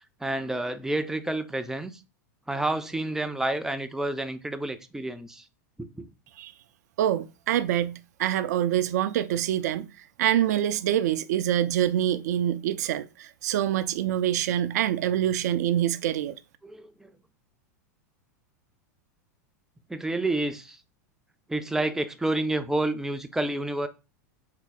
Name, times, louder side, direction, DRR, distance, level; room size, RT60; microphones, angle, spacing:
voice 1, 0.2-1.9 2.5-5.4 6.0-6.1 16.6-17.1 19.9-20.8 21.5-23.9, right 2 dB, 5° right, 0.4 m, -29 dB
voice 2, 7.0-9.9 10.2-16.4, right 11 dB, 70° right, 0.3 m, -25 dB
3.6 x 2.0 x 3.9 m
hypercardioid pair, 100°, 9 cm